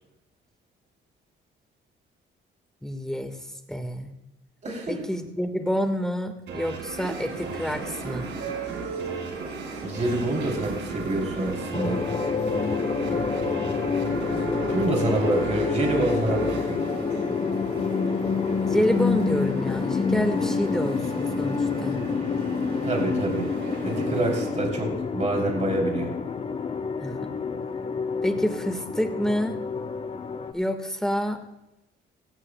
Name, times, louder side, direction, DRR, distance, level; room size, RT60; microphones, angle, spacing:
voice 1, 2.8-3.4 3.7-4.1 4.9-8.2 18.7-22.0 27.0-27.3 28.2-29.6 30.5-31.4, equal, 5° left, 6 dB, 1.4 m, -28 dB
voice 2, 4.6-4.9 9.8-12.0 14.7-16.9 22.8-23.5 23.8-26.1, right 2 dB, 35° right, 0 dB, 3.1 m, -27 dB
sound 1, 6.5-17.7, right 4 dB, 70° right, 2.0 m, -37 dB
sound 2, 7.0-24.5, right 4 dB, 85° right, 3.2 m, -37 dB
sound 3, 11.7-30.5, left 5 dB, 30° left, 0.8 m, -28 dB
16.5 x 15.0 x 2.2 m, 0.90 s
cardioid pair, 90°, 20 cm